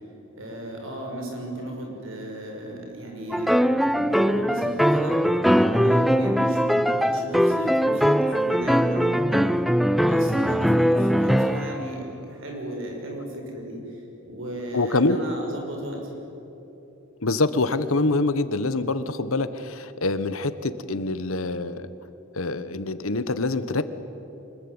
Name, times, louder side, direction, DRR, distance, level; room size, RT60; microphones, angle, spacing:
voice 1, 0.4-5.2 5.6-9.5 10.0-16.1, right 1 dB, 70° right, 1 dB, 6.2 m, -35 dB
sound 1, 3.3-11.9, equal, ahead, 0.6 m, -21 dB
voice 2, 14.7-15.2 17.2-21.9 22.3-23.8, left 2 dB, 80° left, 13 dB, 1.2 m, -25 dB
24.5 x 21.5 x 9.7 m, 3.0 s
head